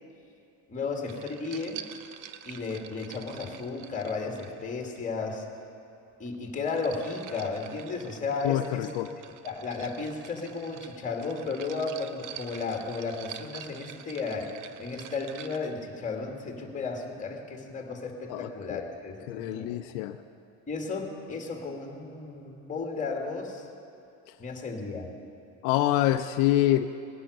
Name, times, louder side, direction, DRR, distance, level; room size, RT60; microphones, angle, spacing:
voice 1, 0.7-1.8 2.4-5.5 6.2-8.9 9.4-14.5 14.8-19.7 20.7-23.7 24.4-25.1, left 4 dB, 20° left, 2 dB, 2.3 m, -34 dB
sound 1, 1.1-5.0 6.3-15.8, right 10 dB, 55° right, 0.8 m, -46 dB
voice 2, 8.4-9.1 18.3-18.8 19.3-20.2 25.6-26.9, left 14 dB, 75° left, 8 dB, 0.6 m, -26 dB
19.0 x 10.0 x 6.7 m, 2.7 s
cardioid pair, 130°, 36 cm